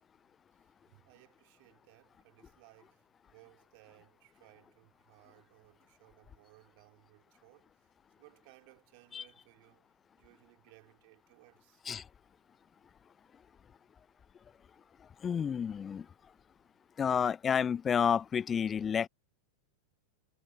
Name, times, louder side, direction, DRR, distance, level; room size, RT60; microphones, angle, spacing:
voice 1, 0.6-11.8, right 32 dB, 45° right, 4.3 m, -62 dB
voice 2, 15.2-16.1 17.0-19.1, left 7 dB, 20° left, 0.4 m, -30 dB
figure-of-eight pair, 90°, 0 cm